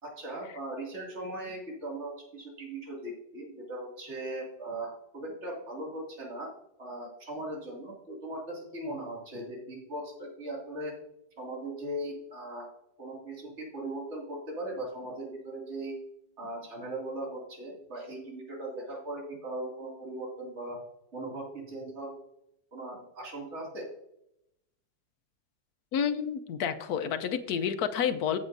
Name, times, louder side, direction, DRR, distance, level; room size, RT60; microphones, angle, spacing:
voice 1, 0.0-6.5 6.8-11.0 11.4-12.7 13.0-15.9 16.4-20.8 21.1-22.1 22.7-23.9, right 1 dB, 40° right, -2 dB, 2.7 m, -39 dB
voice 2, 25.9-28.4, left 8 dB, 70° left, 10 dB, 1.1 m, -29 dB
15.0 x 6.3 x 2.6 m, 0.80 s
omnidirectional pair, 1.8 m